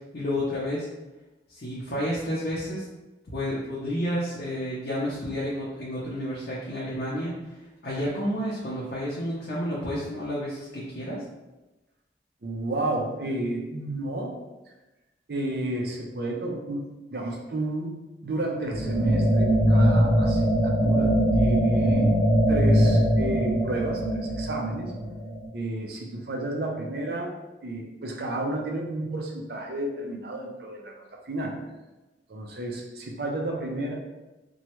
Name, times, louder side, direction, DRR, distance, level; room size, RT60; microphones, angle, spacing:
voice 1, 0.1-0.9 1.5-2.9 3.3-7.4 7.8-11.2, equal, 60° left, -6 dB, 0.6 m, -30 dB
voice 2, 12.4-14.3 15.3-16.8 17.1-18.0 18.2-22.2 22.5-24.9 25.5-27.3 27.6-30.9 31.3-31.6 32.3-33.9, right 1 dB, 60° right, 1 dB, 0.5 m, -31 dB
sound 1, 18.7-25.5, equal, 15° left, 0.8 m, -22 dB
3.0 x 2.2 x 2.9 m, 1.1 s
head